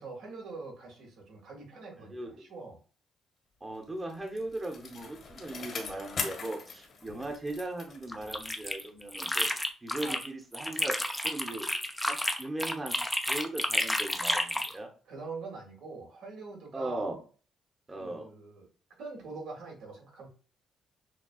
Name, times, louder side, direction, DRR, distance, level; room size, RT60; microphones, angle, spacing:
voice 1, 0.0-2.8 10.0-10.2 15.1-17.0 18.0-18.7 19.0-20.3, right 3 dB, 80° right, -1 dB, 1.9 m, -44 dB
voice 2, 2.1-2.5 3.6-9.5 9.8-11.0 11.2-11.7 12.1-13.0 13.3-14.9 16.7-17.2 17.9-18.3, right 2 dB, 25° right, 2 dB, 1.0 m, -38 dB
Bicycle, 3.8-8.7 9.1-9.2, left 5 dB, 55° left, 1.3 m, -41 dB
sound 1, 8.1-10.3 10.5-14.7, left 1 dB, 5° left, 0.5 m, -31 dB
6.2 x 2.3 x 2.4 m, 0.39 s
cardioid pair, 90°, 0 cm